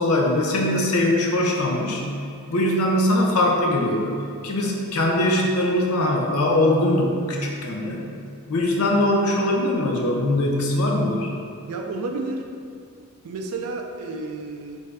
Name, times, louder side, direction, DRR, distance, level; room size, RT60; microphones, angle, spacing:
voice 1, 0.0-2.0 2.5-4.2 4.4-8.1 8.5-11.3, left 1 dB, 75° left, 0 dB, 0.5 m, -21 dB
voice 2, 11.7-12.5 13.2-14.8, right 3 dB, 80° right, 3 dB, 0.4 m, -31 dB
3.2 x 2.6 x 3.4 m, 2.4 s
head